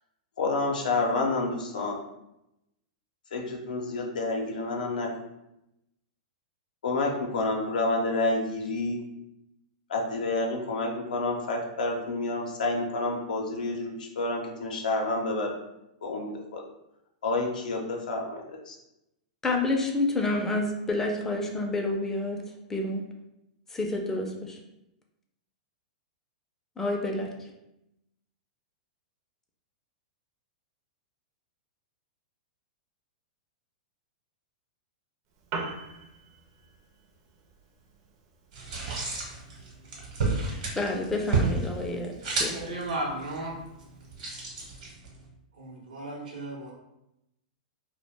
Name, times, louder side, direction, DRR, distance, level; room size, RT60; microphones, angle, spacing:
voice 1, 0.4-2.0 3.3-5.1 6.8-9.0 9.9-15.6 16.0-16.6 17.2-18.8, left 2 dB, 90° left, 0 dB, 0.5 m, -29 dB
voice 2, 19.4-22.4 22.7-23.1 23.7-24.6 26.8-27.3 40.8-42.5, left 2 dB, 10° left, 1 dB, 0.4 m, -29 dB
Piano, 35.3-44.2, right 3 dB, 45° right, 0.5 m, -45 dB
sound 1, 38.5-45.3, right 3 dB, 65° right, 0.9 m, -32 dB
voice 3, 42.5-43.5 45.5-46.7, right 2 dB, 85° right, -2 dB, 0.8 m, -35 dB
2.3 x 2.1 x 3.3 m, 0.88 s
hypercardioid pair, 135°, 4 cm